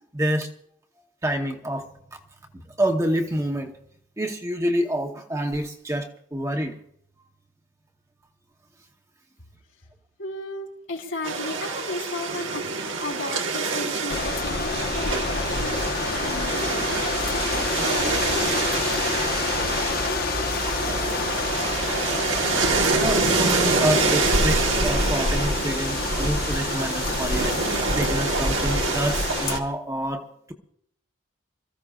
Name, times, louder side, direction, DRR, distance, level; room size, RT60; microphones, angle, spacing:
voice 1, 0.1-0.5 1.2-1.9 2.8-3.7 4.2-6.8 23.0-27.5 27.9-30.5, right 1 dB, 15° right, 3 dB, 0.9 m, -27 dB
voice 2, 10.2-15.8 16.1-16.7 17.3-19.5, left 2 dB, 70° left, 0 dB, 3.4 m, -35 dB
sound 1, 11.2-29.6, right 4 dB, 65° right, 1.4 m, -27 dB
sound 2, 14.1-29.6, left 3 dB, 45° left, 1.1 m, -27 dB
26.5 x 14.5 x 2.4 m, 0.70 s
head